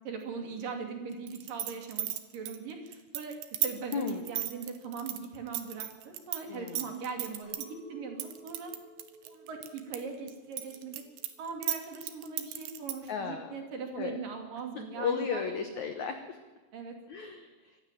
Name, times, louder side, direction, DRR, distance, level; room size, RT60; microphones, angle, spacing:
voice 1, 0.0-2.1 2.3-3.4 3.6-8.7 9.2-11.0 11.4-15.4 15.7-15.9 16.7-17.0, right 5 dB, 50° right, 3 dB, 3.9 m, -40 dB
sound 1, 1.3-6.4 6.7-7.7 8.2-10.0 10.3-13.1, right 12 dB, 70° right, 3.1 m, -35 dB
voice 2, 3.9-4.2 6.5-6.8 13.1-13.6 13.9-14.2 14.7-16.4 17.1-17.5, left 6 dB, 80° left, 7 dB, 1.6 m, -34 dB
Chink clink, 7.4-12.6, equal, 30° left, 8.1 m, -56 dB
25.0 x 12.5 x 9.2 m, 1.3 s
omnidirectional pair, 5.2 m